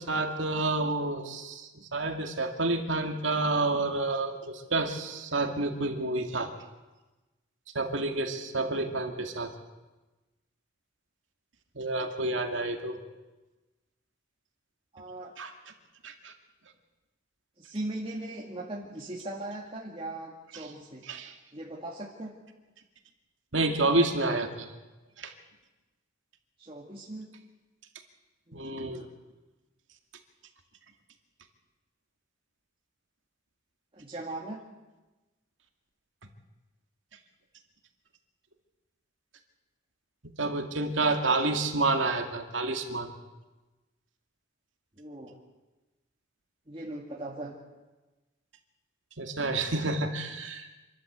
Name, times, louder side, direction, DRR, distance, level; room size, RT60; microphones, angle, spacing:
voice 1, 0.0-6.5 7.7-9.5 11.8-13.0 15.4-15.5 16.0-16.3 20.5-20.7 21.1-21.3 23.5-24.7 25.2-25.3 28.5-29.0 40.4-43.1 49.2-50.7, right 2 dB, 75° right, 4 dB, 2.3 m, -29 dB
voice 2, 14.9-15.3 17.6-21.1 21.5-22.3 26.6-27.3 28.5-29.1 34.0-34.6 45.0-45.4 46.7-47.6, right 1 dB, 25° right, -3 dB, 2.1 m, -39 dB
26.5 x 12.5 x 8.2 m, 1.1 s
head